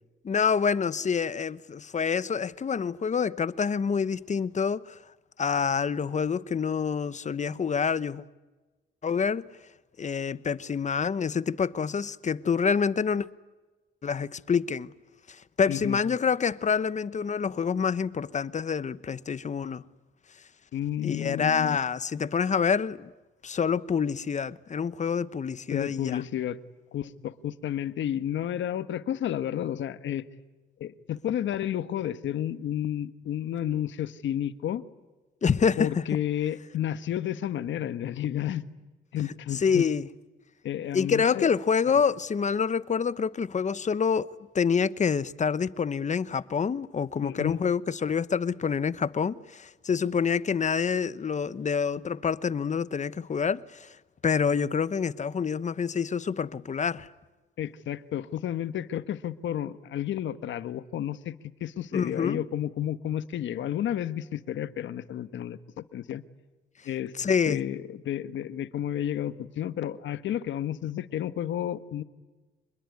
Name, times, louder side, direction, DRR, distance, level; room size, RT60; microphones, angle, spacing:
voice 1, 0.2-5.0 5.4-8.2 9.0-9.5 10.0-13.3 14.0-14.9 15.3-19.8 21.0-23.1 23.4-26.2 35.4-36.0 39.5-40.1 40.9-44.3 44.5-54.0 54.2-57.1 61.9-62.4 67.2-67.6, left 6 dB, 35° left, 1.0 m, -27 dB
voice 2, 15.7-16.0 20.7-21.8 25.7-26.6 26.9-30.2 30.8-34.8 35.8-38.6 39.1-39.8 40.6-41.5 41.9-42.0 47.2-47.6 57.6-61.3 61.6-66.2 66.8-67.1 67.5-72.0, left 11 dB, 70° left, 1.4 m, -31 dB
27.0 x 21.5 x 9.7 m
cardioid pair, 90°, 20 cm